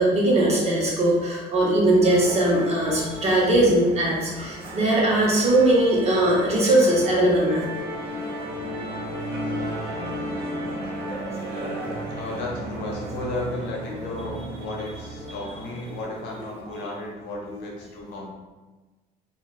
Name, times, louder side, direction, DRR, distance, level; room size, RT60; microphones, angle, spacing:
voice 1, 0.0-7.7 9.6-9.7 11.5-11.9 13.9-14.2, right 1 dB, 40° right, -4 dB, 1.0 m, -20 dB
Musical instrument, 2.0-16.7, equal, 70° right, 1.0 m, -34 dB
voice 2, 12.1-18.3, left 2 dB, 90° left, -2 dB, 0.8 m, -34 dB
2.5 x 2.4 x 3.1 m, 1.2 s
cardioid pair, 110°, 17 cm